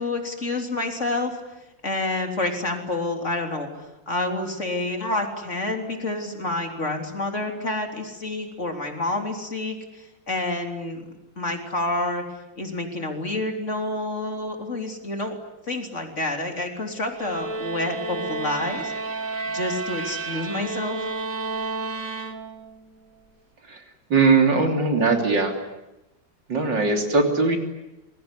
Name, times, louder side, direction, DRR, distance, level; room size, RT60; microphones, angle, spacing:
voice 1, 0.0-1.4 1.8-3.7 4.1-11.0 11.4-12.2 12.6-15.4 15.7-18.9 19.4-21.0, left 2 dB, 35° left, 4 dB, 3.8 m, -28 dB
sound 1, 17.1-22.8, right 3 dB, 45° right, 2.1 m, -31 dB
voice 2, 24.1-25.5 26.5-27.6, right 4 dB, 65° right, 4 dB, 3.9 m, -20 dB
26.5 x 22.0 x 10.0 m, 0.94 s
omnidirectional pair, 2.1 m